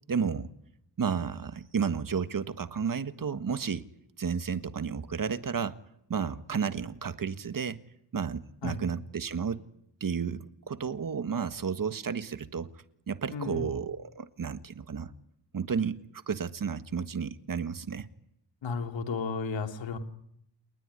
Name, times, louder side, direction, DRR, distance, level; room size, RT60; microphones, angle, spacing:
voice 1, 0.1-0.5 1.0-3.9 4.2-5.8 6.1-7.8 8.1-9.6 10.0-12.7 13.1-15.1 15.5-16.0 16.3-18.1, right 6 dB, 50° right, 1.6 m, -32 dB
voice 2, 13.3-13.7 18.6-20.0, left 5 dB, 90° left, 3.3 m, -33 dB
28.5 x 20.5 x 9.9 m
wide cardioid pair, 100°, 44 cm